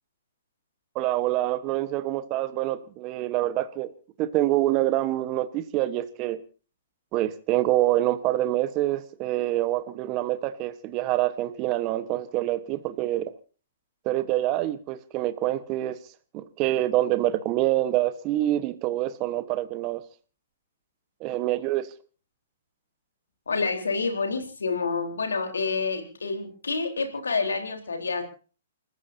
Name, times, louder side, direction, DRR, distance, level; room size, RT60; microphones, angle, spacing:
voice 1, 0.9-3.9 4.2-6.4 7.1-13.3 14.0-16.0 16.3-20.0 21.2-21.9, right 15 dB, 35° right, 1.2 m, -26 dB
voice 2, 23.5-28.2, left 4 dB, 90° left, 3.9 m, -28 dB
29.0 x 14.5 x 2.8 m
hypercardioid pair, 130°, 0 cm